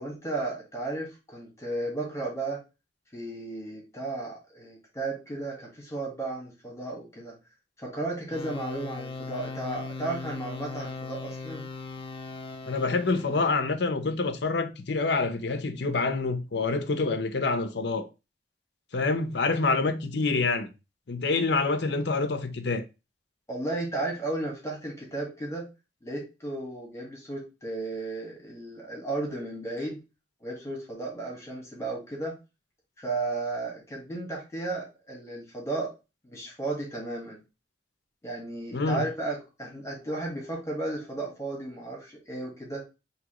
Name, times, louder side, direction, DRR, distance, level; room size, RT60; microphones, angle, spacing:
voice 1, 0.0-2.6 3.1-7.3 7.8-11.7 23.5-25.7 26.0-30.0 30.4-32.3 33.0-35.9 36.2-37.4 38.2-42.8, right 2 dB, 15° left, 1.5 m, -34 dB
sound 1, 8.3-13.5, left 3 dB, 30° left, 0.6 m, -39 dB
voice 2, 12.7-18.1 18.9-20.7 21.1-22.8 38.7-39.0, left 3 dB, 70° left, 0.7 m, -27 dB
6.0 x 2.9 x 2.9 m
head